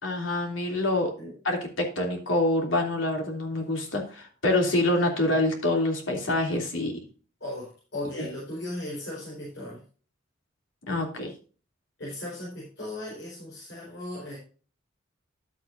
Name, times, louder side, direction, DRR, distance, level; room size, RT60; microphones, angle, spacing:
voice 1, 0.0-1.1 1.4-7.1 8.2-8.3 10.9-11.3, left 1 dB, 80° left, 1 dB, 3.0 m, -26 dB
voice 2, 7.4-9.8 12.0-14.4, left 1 dB, 60° left, -6 dB, 4.7 m, -37 dB
12.0 x 8.3 x 2.6 m, 0.38 s
head